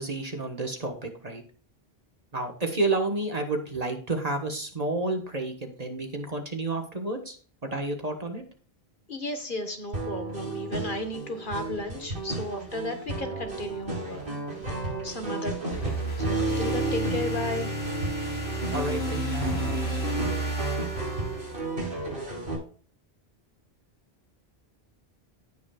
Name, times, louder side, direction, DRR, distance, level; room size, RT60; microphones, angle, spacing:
voice 1, 0.0-1.4 2.3-7.4 7.6-8.4 18.7-19.7, right 2 dB, 40° right, 4 dB, 1.6 m, -30 dB
voice 2, 9.1-14.3 14.5-14.7 15.0-17.7, left 1 dB, 55° left, 5 dB, 1.7 m, -34 dB
sound 1, 9.9-22.6, right 2 dB, 75° right, 4.9 m, -33 dB
sound 2, 15.7-21.9, right 2 dB, 90° left, 4.9 m, -32 dB
17.5 x 6.2 x 2.4 m, 0.42 s
omnidirectional pair, 1.1 m